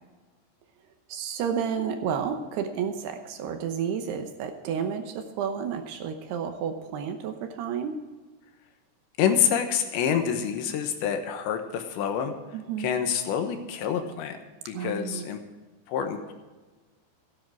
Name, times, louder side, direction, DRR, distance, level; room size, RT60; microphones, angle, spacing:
voice 1, 1.1-7.9 12.5-12.9 14.7-15.3, right 7 dB, 75° right, 6 dB, 2.8 m, -31 dB
voice 2, 9.2-12.3 12.8-14.4 14.7-15.4 15.9-16.3, left 8 dB, 85° left, 6 dB, 3.4 m, -27 dB
16.0 x 10.0 x 4.6 m, 1.3 s
omnidirectional pair, 5.1 m